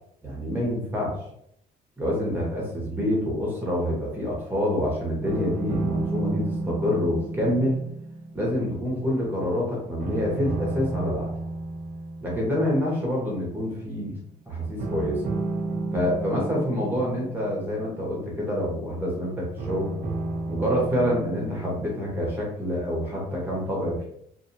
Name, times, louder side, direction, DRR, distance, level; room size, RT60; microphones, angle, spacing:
voice 1, 0.2-1.2 2.0-7.8 8.3-11.3 12.2-14.1 14.5-15.2 15.9-19.9 20.5-24.0, equal, 10° right, -4 dB, 1.2 m, -27 dB
sound 1, 5.2-9.6 10.0-13.3 14.8-18.8 19.6-21.8, right 2 dB, 55° right, 0.7 m, -32 dB
2.7 x 2.7 x 2.7 m, 0.72 s
cardioid pair, 110°, 17 cm